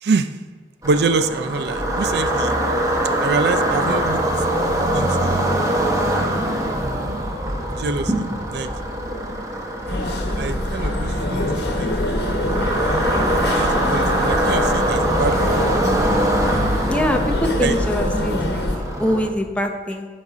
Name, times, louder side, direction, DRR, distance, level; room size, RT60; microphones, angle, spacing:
sound 1, 0.8-19.3, right 1 dB, 20° right, 0.9 m, -23 dB
voice 1, 0.8-2.6 3.2-4.2 4.9-5.5 7.7-8.7 10.4-11.9 13.4-15.5 17.6-17.8, right 4 dB, 65° right, 10 dB, 0.4 m, -25 dB
sound 2, 9.9-18.8, left 1 dB, 65° left, 1.1 m, -24 dB
voice 2, 16.9-18.6 19.0-20.1, equal, 5° left, 3 dB, 0.7 m, -23 dB
12.0 x 4.1 x 5.0 m, 1.4 s
head